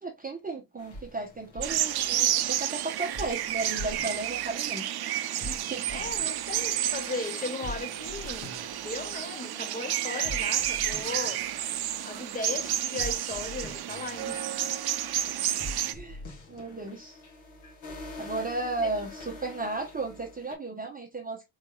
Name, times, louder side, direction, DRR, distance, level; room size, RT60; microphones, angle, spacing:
voice 1, 0.0-4.9 5.4-6.0 15.9-17.2 18.2-21.5, right 3 dB, 20° right, 0.7 m, -35 dB
sound 1, 0.8-20.5, left 1 dB, 70° left, 1.8 m, -45 dB
sound 2, 1.6-15.9, right 12 dB, 55° right, 0.5 m, -31 dB
voice 2, 5.9-8.6 8.8-11.5 12.0-14.6, left 3 dB, 20° left, 0.5 m, -37 dB
3.9 x 3.5 x 2.2 m
cardioid pair, 140°, 48 cm